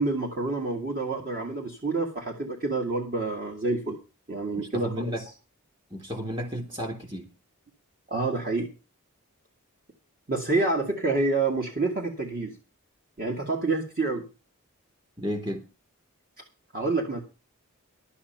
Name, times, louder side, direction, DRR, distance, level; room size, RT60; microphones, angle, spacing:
voice 1, 0.0-4.0 4.3-5.1 8.1-8.7 10.3-12.5 13.2-14.3 16.7-17.2, right 3 dB, 45° right, 1 dB, 2.0 m, -28 dB
voice 2, 4.6-5.2 5.9-7.3 15.2-15.6, equal, 25° right, 5 dB, 3.3 m, -33 dB
12.0 x 8.4 x 5.7 m, 0.31 s
head